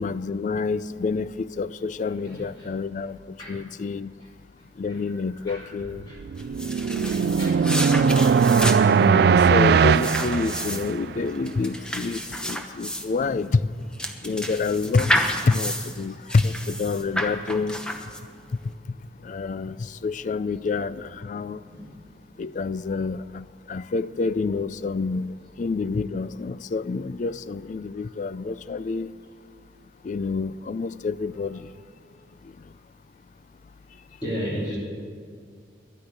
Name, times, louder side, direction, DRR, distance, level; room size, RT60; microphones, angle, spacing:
voice 1, 0.0-4.1 4.8-6.0 6.9-7.2 8.9-13.6 14.2-17.8 19.2-21.6 22.4-29.1 30.0-31.7, left 4 dB, 45° left, 16 dB, 0.3 m, -28 dB
sound 1, 6.0-11.2, right 6 dB, 60° right, 0.3 m, -19 dB
sound 2, 6.4-18.5, equal, 5° left, 0.9 m, -30 dB
voice 2, 6.7-7.8 13.3-13.4 21.7-21.9 34.2-34.8, equal, 25° left, -5 dB, 2.7 m, -34 dB
11.5 x 9.8 x 8.8 m, 2.2 s
head